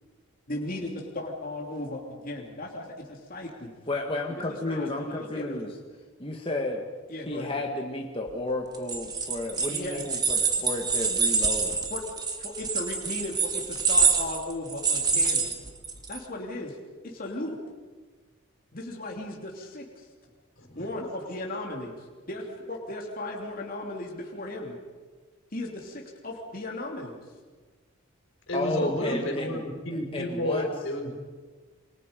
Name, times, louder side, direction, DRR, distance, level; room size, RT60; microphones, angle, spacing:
voice 1, 0.5-3.7 4.3-5.6 7.1-7.6 9.7-10.0 11.9-12.0 12.4-15.5 16.1-16.8 17.0-17.6 18.7-19.8 20.7-24.8 25.5-27.2 28.8-28.9, left 1 dB, 45° left, -1 dB, 3.0 m, -36 dB
voice 2, 3.9-5.7 6.2-6.9 7.3-11.8 28.5-29.6 30.1-30.7, left 2 dB, 25° left, 0 dB, 1.7 m, -32 dB
sound 1, 8.7-16.2, right 4 dB, 20° right, 1.9 m, -26 dB
voice 3, 28.5-31.2, left 1 dB, 75° left, 2 dB, 5.2 m, -31 dB
28.0 x 25.0 x 5.3 m, 1.4 s
head